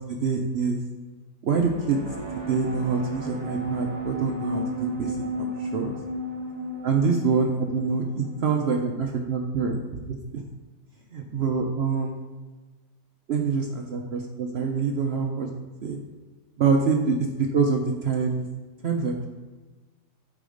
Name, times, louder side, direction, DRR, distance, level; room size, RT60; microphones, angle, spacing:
voice 1, 0.1-0.8 1.4-2.0 2.4-5.9 6.8-10.0 11.1-12.2 13.3-15.5 15.8-16.0 16.6-18.5 18.8-19.3, right 5 dB, 70° right, 2 dB, 0.6 m, -25 dB
sound 1, 1.6-9.1, right 1 dB, 20° right, 1.0 m, -33 dB
8.2 x 5.1 x 3.8 m, 1.2 s
omnidirectional pair, 1.9 m